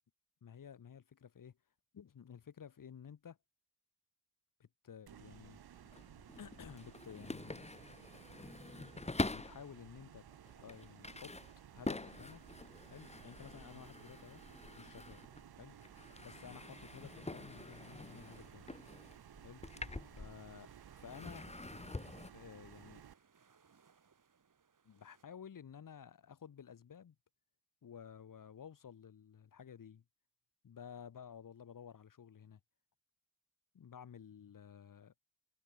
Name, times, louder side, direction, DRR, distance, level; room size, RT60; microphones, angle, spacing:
voice 1, 0.4-1.6 1.9-3.4 4.6-5.8 6.4-7.7 9.3-10.2 10.5-11.3 11.7-12.4 12.9-14.4 14.8-15.2 15.5-15.9 16.2-18.9 19.4-19.6 20.2-21.5 22.3-23.0 24.8-27.1 27.8-30.0 30.6-32.6 33.7-35.1, left 8 dB, 60° left, 1.5 m, -53 dB
sound 1, 5.1-23.1, right 9 dB, 80° right, 1.4 m, -57 dB
sound 2, 5.8-9.7 10.3-15.5 15.8-20.6 21.0-22.3, left 2 dB, 15° left, 1.8 m, -45 dB
sound 3, 15.7-25.2, right 6 dB, 55° right, 6.5 m, -70 dB
wide cardioid pair, 120°, 37 cm